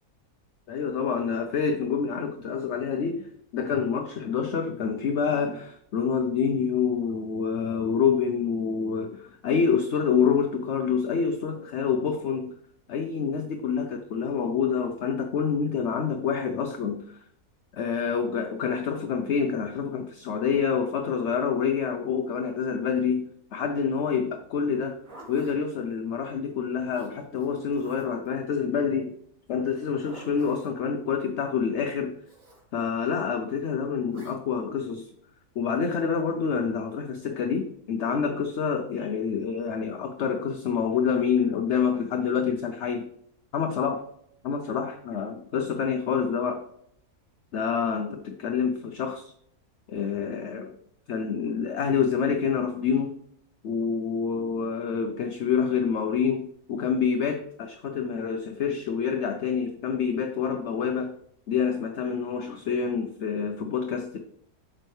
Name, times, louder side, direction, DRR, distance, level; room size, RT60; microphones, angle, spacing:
voice 1, 0.7-12.5 12.9-17.2 17.7-25.0 25.3-29.1 29.5-32.2 32.7-35.1 35.6-43.1 43.5-44.0 44.4-46.6 47.5-49.3 49.9-50.7 51.1-53.1 53.6-61.1 61.5-64.2, left 6 dB, 55° left, 5 dB, 0.9 m, -27 dB
Zipper (clothing), 24.8-25.6 26.9-28.3 29.7-30.8 32.2-32.6 34.1-34.4, right 1 dB, 65° right, 2.9 m, -49 dB
8.8 x 6.3 x 3.2 m, 0.69 s
omnidirectional pair, 1.6 m